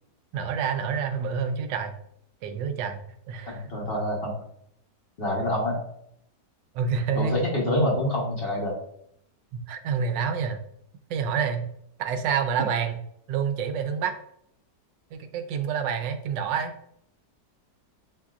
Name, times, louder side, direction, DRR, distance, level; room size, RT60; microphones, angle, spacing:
voice 1, 0.3-1.9 2.4-3.0 3.3-3.6 6.7-7.4 9.5-10.6 11.1-11.6 12.0-13.0 13.3-14.1 15.1-16.7, right 6 dB, 85° right, 7 dB, 1.3 m, -28 dB
voice 2, 3.5-4.4 5.2-5.8 7.1-8.7, left 1 dB, 40° left, -2 dB, 1.0 m, -26 dB
6.8 x 2.7 x 2.4 m, 0.71 s
omnidirectional pair, 1.9 m